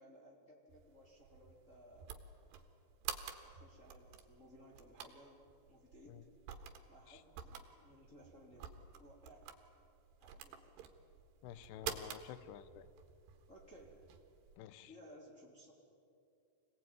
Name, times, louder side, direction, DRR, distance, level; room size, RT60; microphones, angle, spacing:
voice 1, 0.0-2.1 3.4-6.2 6.9-9.4 10.2-10.9 13.5-14.0 14.9-15.7, equal, 20° left, -3 dB, 3.0 m, -60 dB
sound 1, 0.7-14.6, right 8 dB, 70° right, 3.3 m, -50 dB
voice 2, 11.4-12.9 14.6-14.9, left 11 dB, 75° left, 14 dB, 2.7 m, -51 dB
26.0 x 19.0 x 9.4 m, 2.6 s
omnidirectional pair, 5.4 m